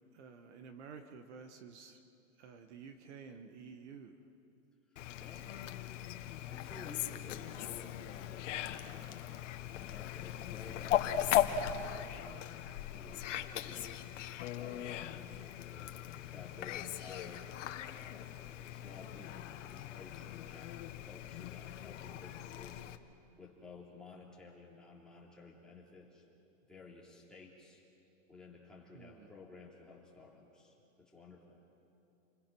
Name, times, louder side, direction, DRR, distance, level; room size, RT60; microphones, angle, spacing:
voice 1, 0.1-2.0 2.4-4.1 5.2-5.8 28.9-29.3, right 5 dB, 60° right, 7 dB, 1.6 m, -52 dB
voice 2, 4.9-5.5 6.5-9.3 9.7-11.5 11.8-12.3 12.9-14.0 14.6-17.5 17.9-20.7 21.0-22.9 23.4-26.3 26.7-27.8 28.3-31.6, left 3 dB, ahead, -5 dB, 3.4 m, -54 dB
Fowl, 5.0-23.0, left 11 dB, 65° left, 1.3 m, -39 dB
29.5 x 21.0 x 6.3 m, 2.7 s
supercardioid pair, 160°, 40 cm